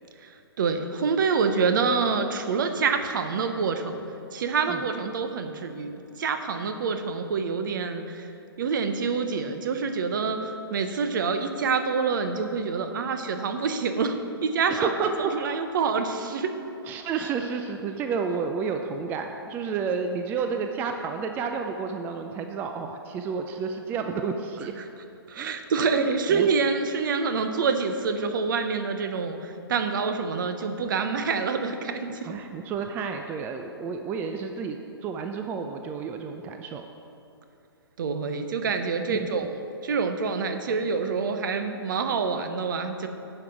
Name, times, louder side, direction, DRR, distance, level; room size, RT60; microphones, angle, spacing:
voice 1, 0.2-4.0 4.3-5.9 6.2-8.3 8.6-14.1 14.4-16.5 25.3-32.3 38.0-39.5 39.8-43.1, right 5 dB, 50° right, 8 dB, 0.8 m, -27 dB
voice 2, 14.7-15.6 16.8-24.7 25.4-26.5 32.2-34.8 35.0-36.9 39.1-39.3, right 5 dB, 15° right, 5 dB, 0.3 m, -31 dB
9.7 x 6.0 x 5.1 m, 2.9 s
figure-of-eight pair, 125°, 13 cm